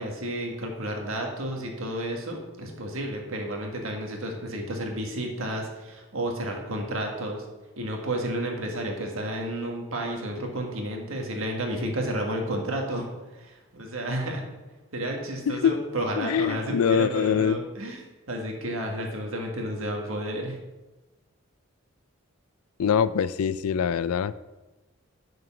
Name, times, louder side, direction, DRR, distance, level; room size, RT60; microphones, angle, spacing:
voice 1, 0.0-7.4 7.8-13.1 13.4-14.5 14.9-20.6, right 1 dB, 75° right, 1 dB, 1.7 m, -31 dB
voice 2, 16.2-17.6 22.8-24.3, left 7 dB, 90° left, 16 dB, 0.4 m, -24 dB
6.9 x 6.5 x 6.0 m, 1.1 s
head